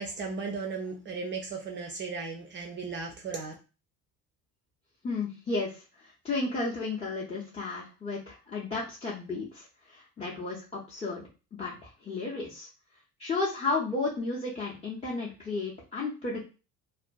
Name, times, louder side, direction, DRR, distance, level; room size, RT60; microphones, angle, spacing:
voice 1, 0.0-3.5, right 4 dB, 25° right, 2 dB, 0.4 m, -36 dB
voice 2, 5.0-11.2 11.5-12.7 13.2-16.5, left 3 dB, 15° left, -7 dB, 0.6 m, -33 dB
2.4 x 2.2 x 2.3 m, 0.32 s
figure-of-eight pair, 60°, 46 cm